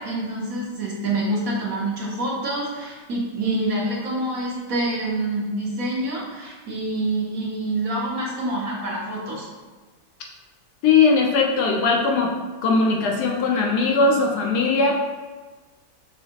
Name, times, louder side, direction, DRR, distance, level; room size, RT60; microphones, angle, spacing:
voice 1, 0.0-9.5, right 1 dB, 55° right, -4 dB, 1.3 m, -26 dB
voice 2, 10.8-12.4 12.6-14.9, left 4 dB, 75° left, 0 dB, 1.1 m, -19 dB
5.6 x 3.3 x 2.8 m, 1.3 s
omnidirectional pair, 1.9 m